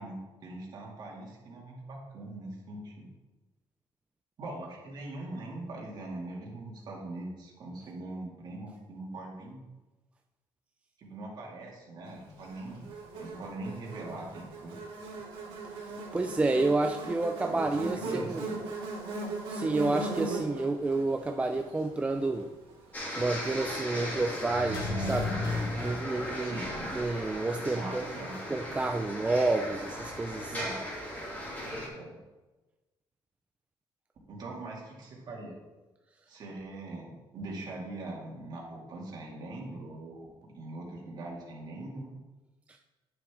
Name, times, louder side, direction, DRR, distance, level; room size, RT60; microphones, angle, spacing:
voice 1, 0.0-3.1 4.4-9.6 11.0-12.9 13.2-14.8 17.5-18.6 26.4-26.9 27.7-28.4 30.5-30.8 31.5-32.1 34.3-35.6 36.3-42.2, right 2 dB, 50° right, -2 dB, 2.3 m, -42 dB
Buzz, 12.4-22.8, right 3 dB, 85° right, 2.7 m, -39 dB
voice 2, 16.1-18.4 19.5-22.5 23.2-26.6 26.9-28.0 28.5-30.6, right 2 dB, 15° right, 5 dB, 0.4 m, -30 dB
sound 1, 22.9-31.9, equal, 15° left, 2.9 m, -38 dB
sound 2, 24.4-27.3 27.6-27.7, left 2 dB, 50° left, 2.0 m, -34 dB
9.7 x 6.8 x 3.6 m, 1.2 s
cardioid pair, 140°, 9 cm